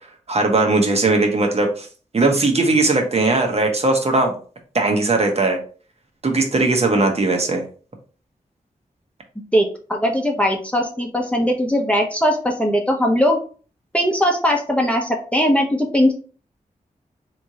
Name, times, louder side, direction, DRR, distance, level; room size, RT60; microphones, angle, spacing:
voice 1, 0.3-1.9 2.1-4.4 4.7-5.6 6.2-7.6, right 2 dB, 45° right, 3 dB, 1.0 m, -18 dB
voice 2, 9.5-13.4 13.9-16.1, equal, 10° left, 0 dB, 0.8 m, -19 dB
3.4 x 3.1 x 2.8 m, 0.39 s
cardioid pair, 65°, 15 cm